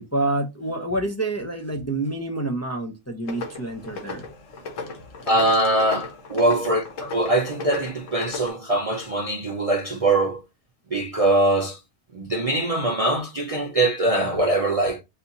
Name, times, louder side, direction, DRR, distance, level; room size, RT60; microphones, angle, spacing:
voice 1, 0.0-4.2, right 2 dB, 15° left, 0.5 m, -28 dB
sound 1, 3.3-8.5, left 4 dB, 75° left, 1.4 m, -36 dB
voice 2, 5.3-10.4 10.9-11.8 12.1-15.0, right 1 dB, 40° right, 0.5 m, -22 dB
4.1 x 2.8 x 3.9 m
omnidirectional pair, 1.4 m